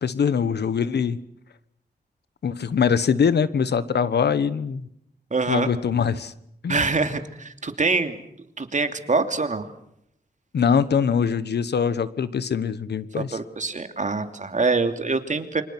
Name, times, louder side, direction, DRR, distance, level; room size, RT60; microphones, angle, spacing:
voice 1, 0.0-1.2 2.4-4.9 5.5-6.3 6.6-6.8 10.5-13.4, left 6 dB, 85° left, 15 dB, 1.3 m, -23 dB
voice 2, 5.3-5.7 6.7-8.2 8.6-9.7 13.2-15.6, right 3 dB, 45° right, 8 dB, 2.9 m, -24 dB
29.0 x 25.0 x 6.2 m, 0.75 s
cardioid pair, 60°, 17 cm